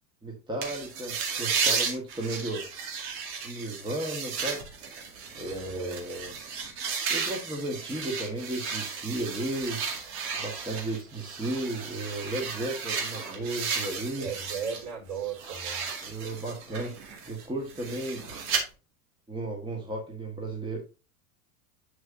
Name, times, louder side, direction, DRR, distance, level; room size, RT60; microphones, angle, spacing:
voice 1, 0.2-2.7 3.4-4.6 5.3-6.4 7.1-9.8 10.3-14.3 16.0-18.3 19.3-20.8, right 1 dB, 10° right, 1.4 m, -34 dB
sound 1, 0.6-14.8 15.2-18.6, right 5 dB, 65° right, 2.2 m, -34 dB
voice 2, 5.4-6.0 14.2-15.9, right 6 dB, 40° right, 4.0 m, -36 dB
8.3 x 6.2 x 2.6 m
hypercardioid pair, 85°, 44 cm